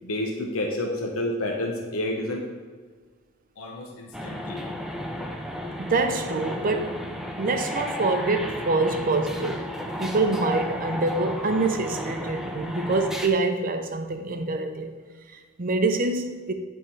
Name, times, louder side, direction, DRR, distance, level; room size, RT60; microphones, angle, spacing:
voice 1, 0.0-2.5 3.6-4.6, left 1 dB, 80° left, 0 dB, 0.9 m, -29 dB
sound 1, 4.1-13.3, equal, ahead, 0.5 m, -33 dB
voice 2, 5.8-7.0 7.4-9.6 10.0-14.9 15.3-16.5, right 3 dB, 45° right, 7 dB, 0.6 m, -25 dB
9.3 x 3.7 x 4.6 m, 1.5 s
head